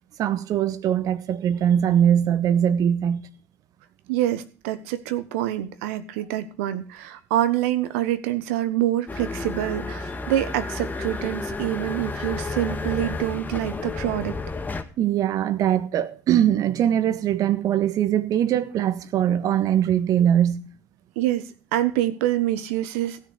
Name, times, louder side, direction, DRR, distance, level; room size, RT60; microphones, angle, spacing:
voice 1, 0.2-3.3 15.0-20.7, right 10 dB, 55° right, 1.4 m, -21 dB
voice 2, 4.1-14.4 21.2-23.2, right 13 dB, 75° right, 1.3 m, -26 dB
sound 1, 9.1-14.8, left 3 dB, 25° left, 1.8 m, -31 dB
16.0 x 6.8 x 6.6 m
hypercardioid pair, 65°, 7 cm